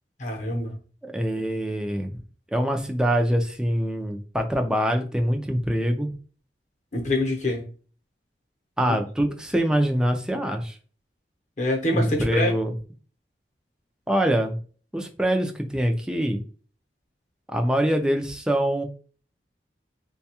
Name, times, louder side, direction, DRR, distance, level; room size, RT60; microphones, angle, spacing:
voice 1, 0.2-0.7 6.9-7.6 8.9-9.0 11.6-12.5, left 1 dB, 45° left, 0.8 m, -25 dB
voice 2, 1.0-2.1 2.5-6.1 8.8-10.8 11.9-12.7 14.1-14.6 14.9-16.4 17.5-18.8, equal, 5° right, 0.4 m, -24 dB
3.9 x 2.3 x 2.8 m
head